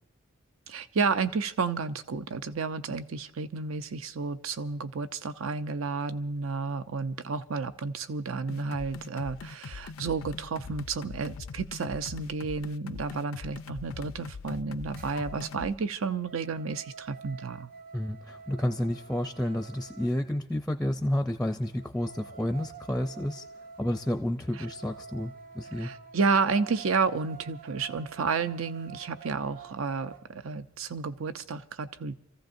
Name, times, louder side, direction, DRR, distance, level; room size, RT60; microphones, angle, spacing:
voice 1, 0.7-17.7 24.6-24.7 25.8-32.2, right 4 dB, 85° right, 11 dB, 0.6 m, -31 dB
sound 1, 8.5-15.7, left 4 dB, 85° left, 0.5 m, -42 dB
sound 2, 15.0-15.6 16.0-20.2 21.6-30.2, right 5 dB, 45° right, 0.6 m, -48 dB
voice 2, 17.9-23.4 23.8-25.9, left 1 dB, 5° left, 7 dB, 0.4 m, -30 dB
29.0 x 15.0 x 2.6 m, 0.76 s
head